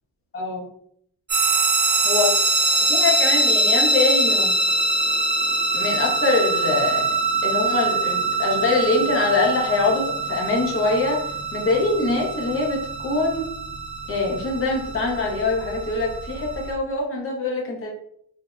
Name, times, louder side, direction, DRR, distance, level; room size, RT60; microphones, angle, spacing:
voice 1, 0.3-0.7 2.0-2.4 2.9-4.5 5.7-7.0 7.4-13.5 14.1-17.9, left 3 dB, 35° left, -1 dB, 0.7 m, -23 dB
sound 1, 1.3-16.7, right 2 dB, 30° right, 0.6 m, -23 dB
3.3 x 2.1 x 2.4 m, 0.70 s
cardioid pair, 130°, 38 cm